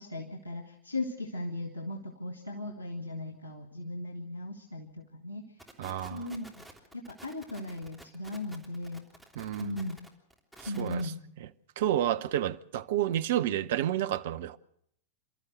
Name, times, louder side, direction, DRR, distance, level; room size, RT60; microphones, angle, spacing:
voice 1, 0.0-5.6 6.1-6.6 6.9-9.0 9.6-10.0 10.7-11.2, left 2 dB, 85° right, 1.9 m, -37 dB
sound 1, 5.6-11.1, right 1 dB, ahead, 3.3 m, -51 dB
voice 2, 5.8-6.3 9.4-9.8 10.6-11.0 11.8-14.6, right 12 dB, 55° right, 0.8 m, -30 dB
28.5 x 13.0 x 7.7 m
figure-of-eight pair, 90°, 0 cm